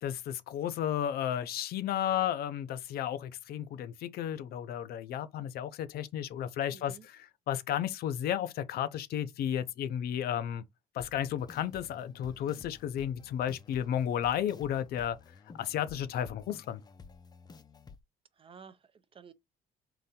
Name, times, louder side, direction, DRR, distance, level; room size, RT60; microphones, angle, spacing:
voice 1, 0.0-10.7 10.9-15.2 15.6-16.8, left 10 dB, 65° left, 0.6 m, -33 dB
voice 2, 6.7-7.1 18.4-19.3, right 6 dB, 30° right, 0.5 m, -53 dB
sound 1, 11.0-18.0, left 5 dB, 25° left, 0.5 m, -52 dB
3.8 x 2.6 x 4.1 m
cardioid pair, 110°, 17 cm